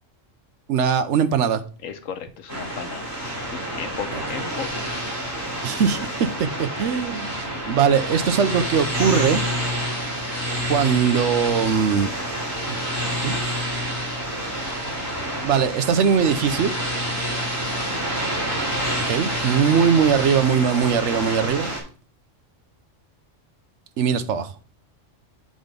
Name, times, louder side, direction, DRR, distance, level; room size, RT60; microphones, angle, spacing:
voice 1, 0.7-1.6 4.1-4.2 5.6-7.4 7.7-9.4 10.7-12.1 12.6-12.8 13.2-13.6 15.4-16.7 19.1-21.7 24.0-24.5, right 7 dB, 70° right, 1.0 m, -21 dB
voice 2, 1.8-3.1 3.5-5.0, left 7 dB, 90° left, 1.3 m, -34 dB
sound 1, 2.5-21.8, equal, 10° left, 3.4 m, -28 dB
9.2 x 3.8 x 5.1 m
omnidirectional pair, 1.3 m